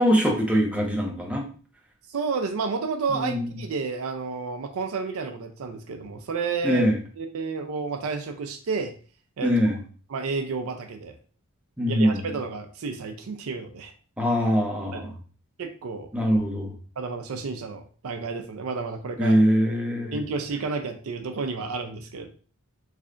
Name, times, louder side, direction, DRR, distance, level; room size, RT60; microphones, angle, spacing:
voice 1, 0.0-1.4 3.1-3.5 6.6-7.0 9.4-9.8 11.8-12.2 14.2-15.1 16.1-16.7 19.2-20.2, equal, 5° right, -1 dB, 0.7 m, -22 dB
voice 2, 2.1-6.9 7.2-8.9 9.4-9.5 10.1-11.2 11.9-13.9 14.9-15.1 15.6-16.1 17.0-19.4 20.1-22.3, right 4 dB, 70° right, 7 dB, 0.5 m, -31 dB
3.2 x 2.4 x 3.7 m, 0.40 s
head